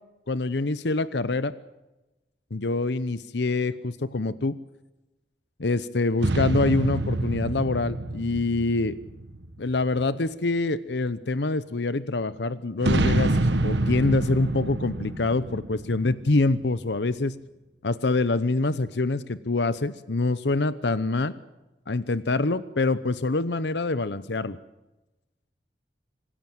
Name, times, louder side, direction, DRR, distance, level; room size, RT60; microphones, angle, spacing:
voice 1, 0.3-1.5 2.5-4.6 5.6-9.0 9.6-13.4 13.6-17.3 17.8-21.3 21.9-24.6, left 3 dB, 75° left, 15 dB, 0.8 m, -25 dB
sound 1, 6.2-9.9 12.8-16.6, right 2 dB, 85° right, 1.3 m, -27 dB
25.5 x 16.5 x 7.9 m, 1.0 s
head